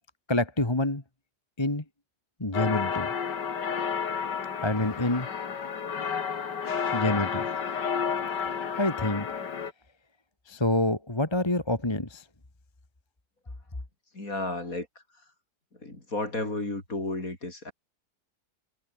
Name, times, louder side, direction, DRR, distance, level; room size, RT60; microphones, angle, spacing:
voice 1, 0.3-1.0 1.6-1.8 2.4-3.1 4.6-5.3 6.9-7.4 8.8-9.3 10.5-12.2, left 1 dB, 15° left, 2.0 m, -27 dB
sound 1, 2.5-9.7, left 6 dB, 65° left, 2.5 m, -31 dB
voice 2, 14.1-14.9 15.8-17.7, left 2 dB, 45° left, 6.1 m, -32 dB
omnidirectional pair, 2.0 m